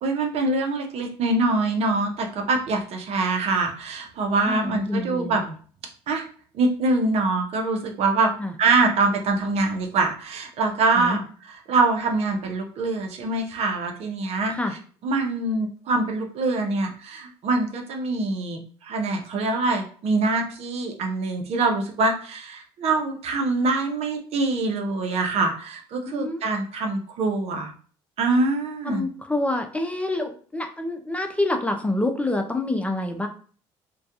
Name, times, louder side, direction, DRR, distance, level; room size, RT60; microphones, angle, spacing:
voice 1, 0.0-5.4 6.1-6.3 6.5-8.3 8.6-11.2 11.5-14.6 15.0-27.7 28.2-29.0, right 3 dB, 60° right, 3 dB, 0.6 m, -24 dB
voice 2, 4.5-5.5 8.4-8.5 11.0-11.2 14.5-14.8 26.1-26.4 28.8-33.3, left 2 dB, 10° left, 5 dB, 0.4 m, -27 dB
2.3 x 2.2 x 2.7 m, 0.43 s
hypercardioid pair, 70°, 12 cm